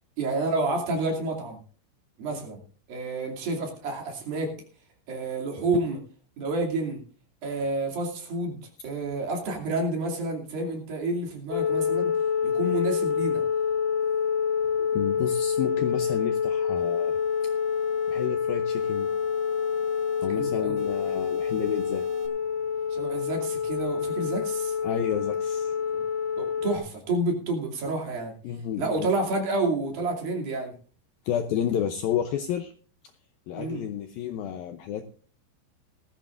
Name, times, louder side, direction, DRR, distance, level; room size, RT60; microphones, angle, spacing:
voice 1, 0.2-1.6 2.2-2.6 2.9-4.5 5.1-6.0 6.4-7.0 7.4-12.1 12.4-13.4 20.3-20.8 22.9-24.8 25.9-26.0 26.4-28.3 28.8-30.7 33.5-33.8, right 2 dB, 55° right, 1 dB, 4.2 m, -29 dB
sound 1, 11.5-26.8, left 7 dB, 70° left, 3.4 m, -27 dB
voice 2, 14.8-17.2 18.1-19.1 20.2-22.1 24.8-25.8 28.4-29.1 31.3-32.7 33.5-35.1, left 9 dB, 90° left, 8 dB, 2.0 m, -31 dB
sound 2, 15.2-16.3 16.8-18.3 18.8-20.3 20.8-22.3, right 3 dB, 80° right, 5.0 m, -52 dB
19.0 x 13.5 x 2.5 m, 0.40 s
omnidirectional pair, 5.2 m